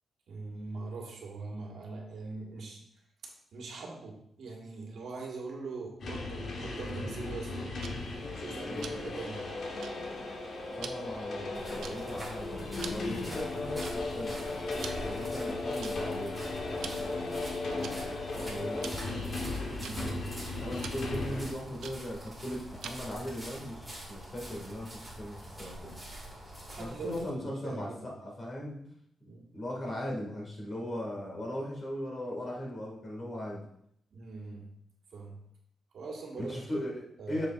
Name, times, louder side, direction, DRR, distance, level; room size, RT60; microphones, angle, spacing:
voice 1, 0.3-2.8 3.2-7.7 8.4-9.5 19.7-20.5 26.7-28.1 29.3-29.5 34.1-34.7 35.1-35.4 35.9-36.5 37.2-37.5, right 3 dB, 70° right, -1 dB, 1.6 m, -42 dB
sound 1, 6.0-21.5, left 3 dB, 60° left, 1.2 m, -36 dB
Tick-tock, 7.8-23.2, right 6 dB, 90° right, 0.5 m, -49 dB
voice 2, 8.6-8.9 10.7-14.4 15.0-19.4 20.5-25.9 26.8-28.9 29.2-33.6 36.4-37.5, equal, 30° left, -2 dB, 2.0 m, -39 dB
sound 2, 11.5-27.2, right 1 dB, 5° left, 2.1 m, -45 dB
7.3 x 6.4 x 2.5 m, 0.72 s
wide cardioid pair, 140°, 0 cm